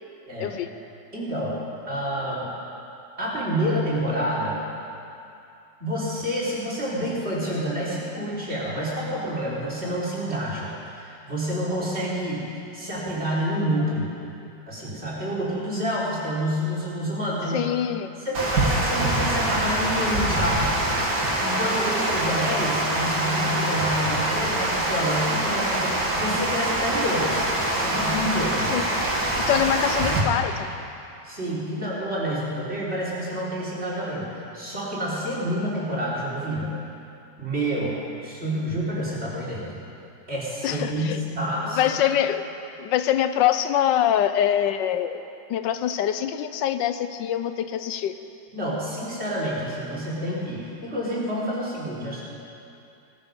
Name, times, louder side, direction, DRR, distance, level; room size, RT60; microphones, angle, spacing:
voice 1, 1.1-1.6 1.9-2.5 3.2-4.6 5.8-14.1 14.7-17.7 18.2-20.8 21.4-27.5 27.7-28.9 29.5-29.6 31.2-34.3 34.5-36.7 37.4-38.0 38.2-39.8 40.3-42.0 48.5-52.2, equal, 35° right, -7 dB, 3.9 m, -28 dB
voice 2, 17.5-18.1 28.7-28.9 29.5-30.8 40.6-41.2 41.7-42.4 42.8-45.2 45.5-48.1, left 10 dB, 90° left, 11 dB, 1.4 m, -24 dB
Water, 18.3-30.2, right 1 dB, 70° right, 3.0 m, -24 dB
18.0 x 13.5 x 5.3 m, 2.6 s
omnidirectional pair, 1.9 m